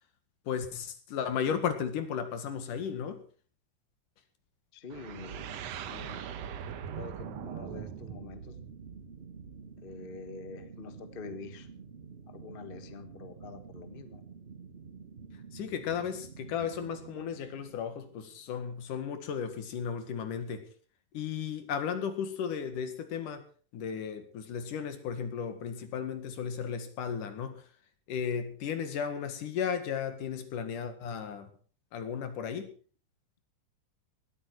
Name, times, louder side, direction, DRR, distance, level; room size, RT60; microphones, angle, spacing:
voice 1, 0.5-3.2 15.5-20.7 21.1-23.4 23.7-27.6 28.1-31.5 31.9-32.7, left 7 dB, 80° left, 3.4 m, -35 dB
voice 2, 4.7-5.5 5.9-6.3 6.9-8.6 9.8-11.7 12.3-14.2, left 4 dB, 40° left, 0.8 m, -45 dB
sound 1, 4.9-9.7, right 9 dB, 65° right, 2.0 m, -41 dB
sound 2, 7.7-18.7, right 5 dB, 35° right, 1.0 m, -50 dB
19.0 x 13.5 x 4.6 m
omnidirectional pair, 3.6 m